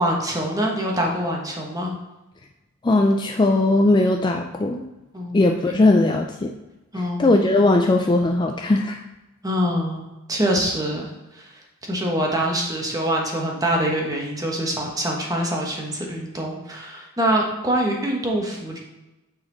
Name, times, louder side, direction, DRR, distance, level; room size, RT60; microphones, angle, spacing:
voice 1, 0.0-1.9 5.1-5.7 6.9-7.4 9.4-11.1 11.3-18.8, right 1 dB, 15° right, 0 dB, 1.2 m, -25 dB
voice 2, 2.8-4.8 5.3-6.5 6.9-9.0, left 2 dB, 20° left, 3 dB, 0.3 m, -19 dB
8.8 x 4.2 x 3.9 m, 1.0 s
head